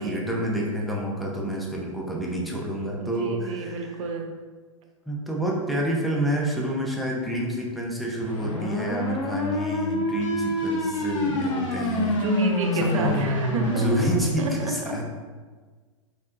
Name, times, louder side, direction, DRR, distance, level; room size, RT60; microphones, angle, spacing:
voice 1, 0.0-4.0 5.1-12.2 12.7-13.3 13.6-15.0, right 1 dB, ahead, -3 dB, 0.6 m, -28 dB
voice 2, 3.0-4.3 12.0-13.9 14.4-14.7, right 2 dB, 75° right, 3 dB, 0.7 m, -29 dB
sound 1, 8.2-14.2, left 1 dB, 70° left, 0.9 m, -27 dB
4.3 x 3.2 x 2.5 m, 1.4 s
hypercardioid pair, 135°, 17 cm